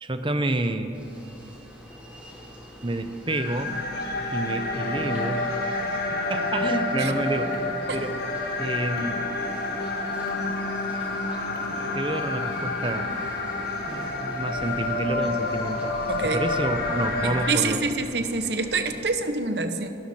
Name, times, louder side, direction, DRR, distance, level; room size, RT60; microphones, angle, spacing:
voice 1, 0.0-0.9 2.8-3.8 4.3-6.0 6.3-7.6 7.9-8.2 8.6-9.2 11.8-13.1 13.9-17.9, right 1 dB, 25° right, 9 dB, 0.8 m, -29 dB
sound 1, 0.9-19.0, equal, 5° right, 2.9 m, -45 dB
sound 2, 3.3-17.5, left 2 dB, 55° left, 1.9 m, -29 dB
Car, 7.5-13.4, right 1 dB, 75° right, 1.7 m, -48 dB
voice 2, 16.1-16.4 17.2-19.9, right 3 dB, 60° right, 8 dB, 1.0 m, -26 dB
26.0 x 12.5 x 4.3 m, 2.9 s
head